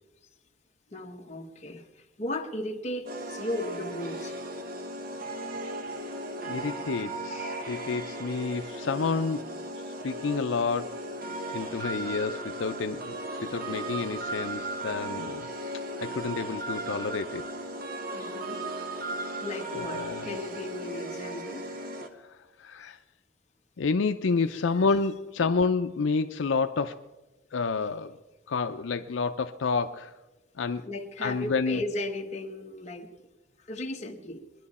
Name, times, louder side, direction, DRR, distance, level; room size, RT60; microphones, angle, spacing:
voice 1, 0.9-1.9 2.2-4.3 18.1-18.6 19.4-21.6 30.8-33.1 33.7-34.4, left 1 dB, 35° left, 2 dB, 1.2 m, -35 dB
sound 1, 3.1-22.1, right 1 dB, 50° right, 1.1 m, -36 dB
voice 2, 6.5-9.4 10.0-11.0 11.5-13.2 13.5-15.5 16.0-17.5 19.9-20.3 22.6-23.0 23.8-27.0 27.5-28.2 28.5-30.1 30.6-30.9 31.2-31.8, left 4 dB, 80° left, 8 dB, 0.5 m, -29 dB
21.0 x 11.0 x 4.2 m, 1.1 s
head